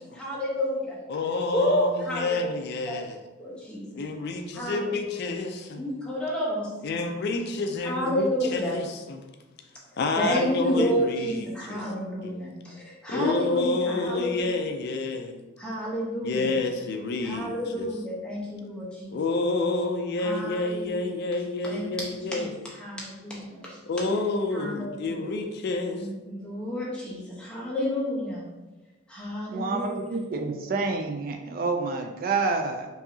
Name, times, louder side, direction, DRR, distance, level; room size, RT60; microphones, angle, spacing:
voice 1, 0.1-1.0 1.5-2.3 2.9-3.0 3.4-4.0 4.5-5.2 5.8-7.0 7.8-8.8 10.2-14.5 15.6-16.5 17.2-19.2 20.2-21.1 21.6-23.8 24.5-25.2 26.0-28.4 29.1-30.2, equal, 5° left, -6 dB, 0.9 m, -30 dB
voice 2, 1.1-3.2 3.9-5.8 6.8-9.2 10.0-11.9 12.2-12.4 13.1-15.4 16.2-17.9 19.1-22.5 23.9-26.1, left 3 dB, 55° left, 4 dB, 0.4 m, -29 dB
voice 3, 29.5-32.9, right 4 dB, 45° right, 5 dB, 0.3 m, -28 dB
4.7 x 2.7 x 2.7 m, 1.1 s
head